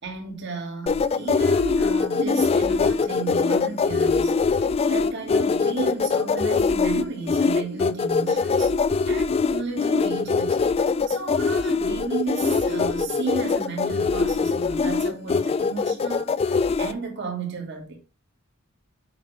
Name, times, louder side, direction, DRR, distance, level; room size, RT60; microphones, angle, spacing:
voice 1, 0.0-4.3 4.9-8.7 9.1-10.7 11.1-18.0, right 4 dB, 60° right, 1.9 m, -33 dB
sound 1, 0.8-16.8, left 1 dB, 85° right, 2.1 m, -40 dB
sound 2, 0.9-16.9, left 4 dB, 30° left, 0.3 m, -22 dB
7.2 x 5.2 x 3.3 m
head